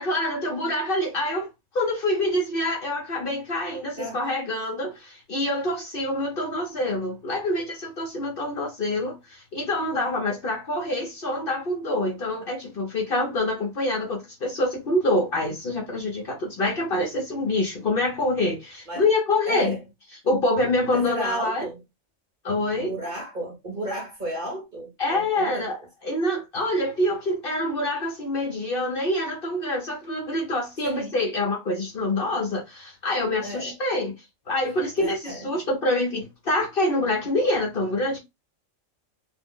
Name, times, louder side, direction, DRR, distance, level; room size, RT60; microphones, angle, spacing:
voice 1, 0.0-19.8 20.2-21.7 22.4-22.9 25.0-38.2, left 1 dB, 50° left, 0.8 m, -26 dB
voice 2, 19.5-19.8 20.9-21.8 22.7-25.7 30.8-31.2 33.4-33.7 35.0-35.5, right 1 dB, 40° right, 0.9 m, -33 dB
2.6 x 2.0 x 3.6 m
omnidirectional pair, 1.4 m